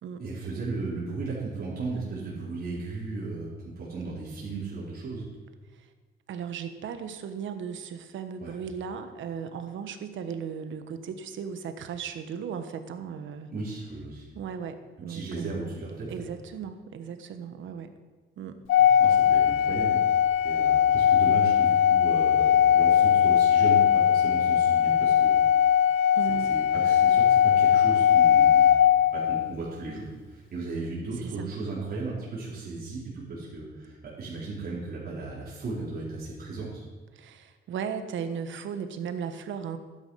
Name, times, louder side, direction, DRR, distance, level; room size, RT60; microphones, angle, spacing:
voice 1, 0.2-5.3 8.4-8.5 13.5-14.3 15.1-16.2 18.8-20.0 20.4-25.4 26.3-28.7 29.1-36.8, right 3 dB, 50° right, -7 dB, 4.6 m, -35 dB
voice 2, 6.3-13.5 14.3-15.7 16.1-17.9 18.4-18.6 26.1-26.6 31.2-31.5 37.1-39.8, right 7 dB, 75° right, 9 dB, 1.3 m, -36 dB
Organ, 18.7-29.5, left 9 dB, 80° left, 0.7 m, -20 dB
12.0 x 9.9 x 5.8 m, 1.3 s
cardioid pair, 90°, 20 cm